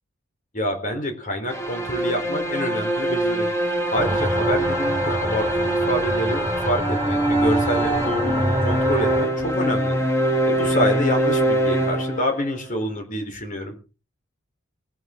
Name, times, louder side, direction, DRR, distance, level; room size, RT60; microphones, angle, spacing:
voice 1, 0.5-3.5 3.9-10.0 10.5-13.8, equal, 40° left, 5 dB, 3.8 m, -27 dB
sound 1, 1.5-12.6, right 1 dB, 15° left, 3.1 m, -23 dB
sound 2, 3.9-9.3, equal, 15° right, 5.6 m, -27 dB
21.0 x 11.0 x 3.8 m, 0.34 s
head